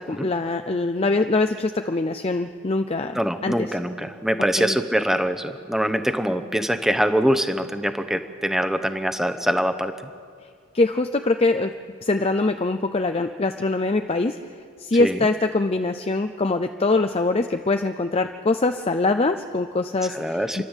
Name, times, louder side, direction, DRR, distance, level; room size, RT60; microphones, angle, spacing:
voice 1, 0.0-3.8 4.6-4.8 10.7-11.7 12.0-14.4 14.8-20.6, left 2 dB, 25° left, 7 dB, 0.5 m, -23 dB
voice 2, 3.1-10.1 15.0-15.2 20.1-20.6, equal, ahead, 9 dB, 0.9 m, -24 dB
29.0 x 12.0 x 8.1 m, 2.3 s
head